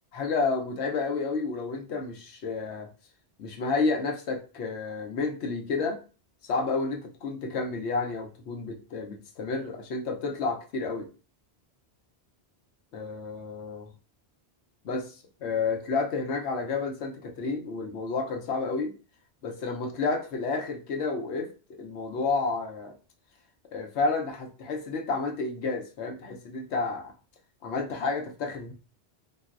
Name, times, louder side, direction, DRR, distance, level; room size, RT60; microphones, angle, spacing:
voice 1, 0.1-2.9 3.4-6.0 6.4-11.1 12.9-13.9 14.8-18.9 19.4-22.9 23.7-27.1 27.6-28.7, left 4 dB, 85° left, 3 dB, 0.9 m, -30 dB
3.9 x 2.0 x 2.3 m, 0.34 s
omnidirectional pair, 1.1 m